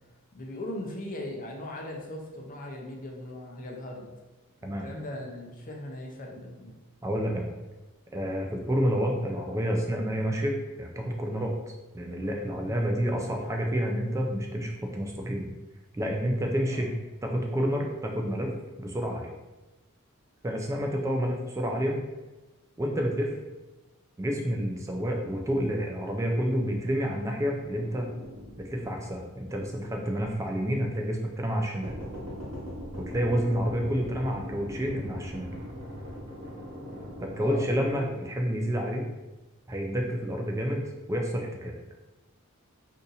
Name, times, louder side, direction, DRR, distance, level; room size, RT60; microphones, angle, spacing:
voice 1, 0.3-4.1 4.8-6.7 12.5-12.7 16.7-16.8 33.6-33.7 37.4-37.6, left 1 dB, 40° left, 0 dB, 0.6 m, -39 dB
voice 2, 7.0-7.5 8.1-11.6 11.9-15.5 15.9-18.5 18.8-19.3 20.4-22.0 22.8-23.4 24.2-28.1 28.6-31.9 33.0-35.5 37.2-39.1 39.7-41.7, equal, 15° right, 1 dB, 0.3 m, -29 dB
sound 1, 27.6-29.9 30.2-30.3 31.8-38.1, equal, 65° right, 1.2 m, -40 dB
2.7 x 2.5 x 3.9 m, 1.1 s
head